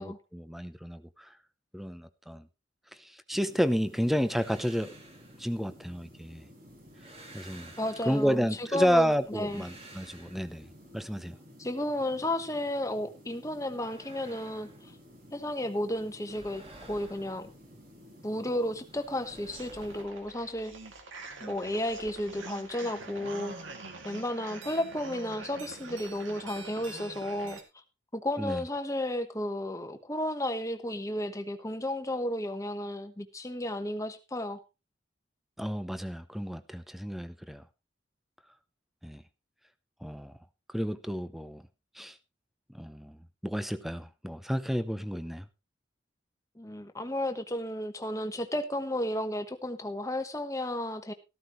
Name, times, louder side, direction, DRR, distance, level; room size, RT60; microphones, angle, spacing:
voice 1, 0.0-1.3 1.7-2.5 3.0-5.0 5.4-6.5 7.3-7.7 8.1-10.7 10.9-11.3 28.4-28.6 35.6-37.6 39.0-39.2 40.0-40.3 40.7-41.6 42.0-42.2 42.7-43.2 43.4-45.5, equal, ahead, 0.7 m, -31 dB
sound 1, 3.3-20.0, equal, 50° right, 4.9 m, -53 dB
sound 2, 4.2-6.3 6.7-8.7 9.1-11.0 13.4-15.6 15.9-18.1 18.5-21.0 21.3-23.7, right 2 dB, 30° right, 2.7 m, -54 dB
voice 2, 7.8-9.6 11.6-14.9 15.3-17.5 18.2-20.7 21.4-23.6 24.0-27.6 28.1-34.6 46.6-51.1, left 1 dB, 15° left, 1.2 m, -33 dB
sound 3, 19.5-27.6, right 3 dB, 90° right, 2.4 m, -45 dB
14.0 x 13.5 x 3.1 m
head